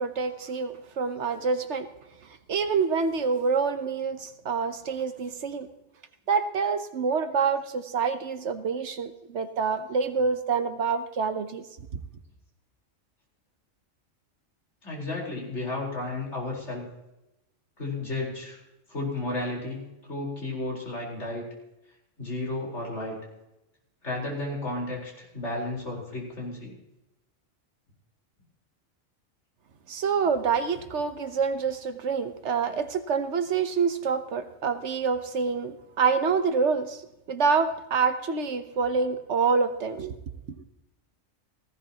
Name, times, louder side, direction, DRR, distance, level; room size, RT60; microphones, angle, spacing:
voice 1, 0.0-1.9 2.5-5.7 6.3-11.6 29.9-37.0 37.3-40.1, right 5 dB, 65° right, 9 dB, 1.3 m, -27 dB
voice 2, 14.8-16.9 17.8-18.6 18.9-21.5 22.2-23.2 24.0-26.8, left 2 dB, 60° left, -3 dB, 4.8 m, -33 dB
18.5 x 15.5 x 3.0 m, 0.92 s
omnidirectional pair, 1.3 m